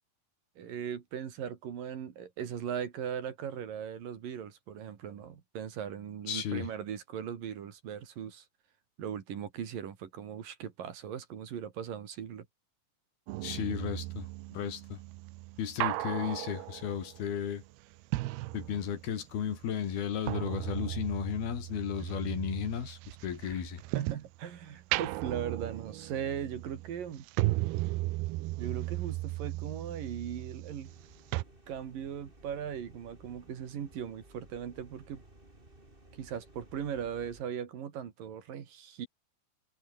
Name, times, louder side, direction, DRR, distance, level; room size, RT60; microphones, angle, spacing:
voice 1, 0.6-8.5 9.0-12.5 22.0-22.1 23.4-23.6 23.9-27.3 28.6-30.9 31.7-35.2 36.1-39.1, right 8 dB, 60° right, 3.9 m, -39 dB
voice 2, 6.3-6.7 13.4-15.0 15.6-17.6 18.5-23.8, left 8 dB, 70° left, 4.7 m, -34 dB
sound 1, 13.3-19.3 19.5-24.4 24.8-31.1 31.3-31.4, right 19 dB, 90° right, 2.7 m, -36 dB
sound 2, 30.8-37.4, right 1 dB, 15° right, 4.8 m, -57 dB
omnidirectional pair, 4.6 m